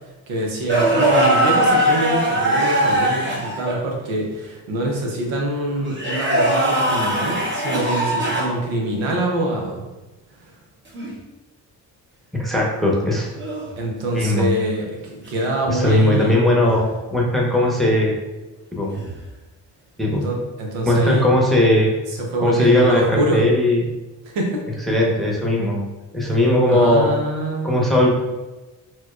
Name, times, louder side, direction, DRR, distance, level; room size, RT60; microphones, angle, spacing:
voice 1, 0.3-9.8 10.4-10.6 13.8-16.5 20.1-21.2 22.1-23.5 24.2-24.6 26.7-28.0, right 1 dB, 75° right, 0 dB, 0.9 m, -25 dB
sound 1, 0.7-3.8 5.9-8.6 10.9-11.1 13.4-13.7 16.6-16.9 18.9-19.2, right 1 dB, 25° right, 1.1 m, -20 dB
voice 2, 12.3-13.3 14.1-14.5 15.7-18.1 18.7-18.9 20.0-20.2 20.8-21.9 22.4-23.8 24.9-25.8 26.1-27.1 27.6-28.1, left 1 dB, ahead, -3 dB, 1.0 m, -18 dB
4.3 x 2.3 x 2.4 m, 1.1 s
hypercardioid pair, 45°, 47 cm